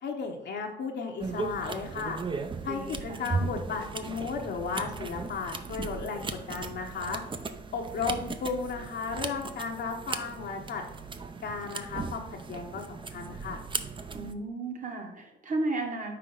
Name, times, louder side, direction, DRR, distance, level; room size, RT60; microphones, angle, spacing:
voice 1, 0.0-2.2 2.6-7.2 7.7-10.8 11.4-13.6, left 5 dB, 60° left, 1 dB, 0.8 m, -34 dB
sound 1, 1.2-14.3, right 4 dB, 25° right, 0.5 m, -37 dB
voice 2, 2.7-3.2 14.1-16.2, right 2 dB, 40° right, 3 dB, 1.3 m, -34 dB
5.6 x 4.5 x 3.9 m, 0.85 s
cardioid pair, 90°, 20 cm